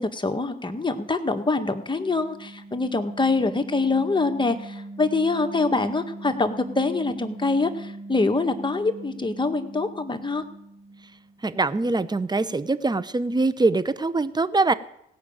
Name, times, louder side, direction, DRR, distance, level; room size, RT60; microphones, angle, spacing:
voice 1, 0.0-10.4, left 3 dB, 20° left, 6 dB, 1.7 m, -25 dB
sound 1, 1.3-11.4, right 2 dB, 35° right, 3.4 m, -41 dB
voice 2, 11.4-14.7, right 3 dB, 20° right, 15 dB, 0.9 m, -23 dB
17.0 x 6.0 x 8.9 m, 0.78 s
supercardioid pair, 60°, 21 cm